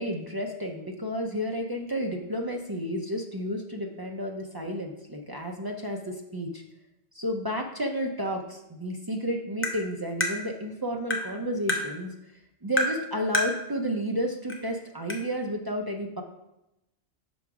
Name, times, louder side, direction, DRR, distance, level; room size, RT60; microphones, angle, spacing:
voice 1, 0.0-6.6 7.1-12.1 12.6-16.2, equal, 35° right, 2 dB, 0.3 m, -31 dB
Tap, 9.6-9.8 10.2-10.3 11.1-11.3 11.7-11.8 12.8-13.0 13.3-13.5 14.5-14.6 15.1-15.2, left 1 dB, 15° left, 0.6 m, -26 dB
5.9 x 3.9 x 4.7 m, 0.90 s
omnidirectional pair, 1.1 m